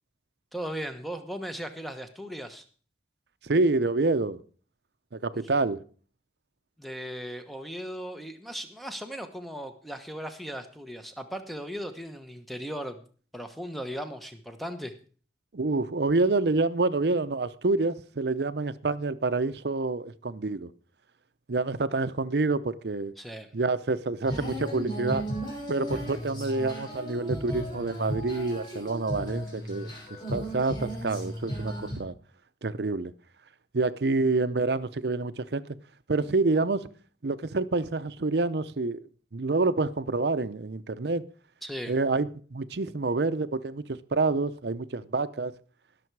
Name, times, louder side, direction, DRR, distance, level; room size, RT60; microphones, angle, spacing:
voice 1, 0.5-2.6 5.3-5.5 6.8-13.0 13.3-14.9 23.2-23.5 41.6-42.0, equal, ahead, 1.1 m, -37 dB
voice 2, 3.4-4.4 5.1-5.8 15.5-20.7 21.5-23.1 23.5-25.2 25.7-29.9 30.3-32.1 32.6-33.1 33.7-35.8 36.1-36.9 37.2-39.0 39.3-41.2 41.9-45.5, right 3 dB, 70° right, 0.7 m, -27 dB
Female singing, 24.2-32.0, equal, 25° left, 6.3 m, -35 dB
20.0 x 6.9 x 4.7 m
head